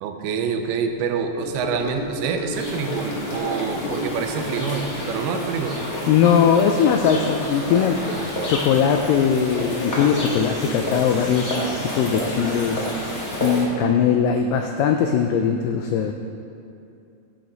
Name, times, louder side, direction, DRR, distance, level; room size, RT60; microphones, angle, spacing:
voice 1, 0.0-5.9, right 6 dB, 85° right, 5 dB, 2.6 m, -26 dB
Gurgling / Sink (filling or washing) / Trickle dribble, 1.4-13.0 13.3-13.6 13.9-14.0, left 2 dB, 70° left, 2.7 m, -35 dB
sound 1, 2.5-13.6, equal, 50° left, 1.0 m, -29 dB
voice 2, 6.1-8.0 8.4-11.5 11.8-16.1, left 7 dB, 90° left, 4 dB, 1.9 m, -20 dB
15.5 x 6.7 x 4.0 m, 2.6 s
omnidirectional pair, 4.4 m